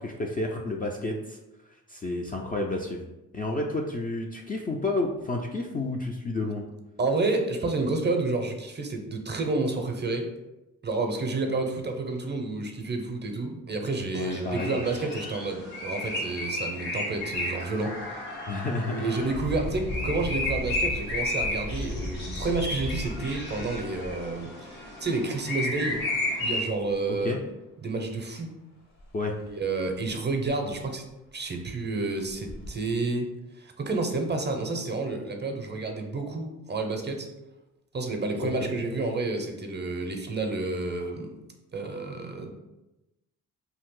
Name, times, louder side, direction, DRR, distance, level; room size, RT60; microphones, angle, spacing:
voice 1, 0.0-1.4 1.9-3.1 3.3-6.6 14.1-14.8 18.5-19.0 27.1-27.4 29.1-29.3 38.4-38.7, left 2 dB, 25° left, 0 dB, 0.4 m, -30 dB
voice 2, 7.0-10.3 10.8-18.2 18.8-26.0 26.4-27.3 27.8-28.5 29.4-31.0 31.3-33.3 33.6-37.3 37.9-41.3 41.7-42.5, right 3 dB, 25° right, 4 dB, 0.6 m, -30 dB
sound 1, 14.1-26.6, left 1 dB, 85° left, 1.0 m, -33 dB
Engine, 17.2-17.4 17.9-18.0 19.2-25.0 25.9-26.0 26.5-27.2 29.0-29.1 29.5-29.6 30.0-30.1 30.5-31.0 31.5-31.6 32.2-32.7, left 1 dB, 55° left, 0.9 m, -36 dB
2.8 x 2.4 x 3.6 m, 0.99 s
supercardioid pair, 50°, 40 cm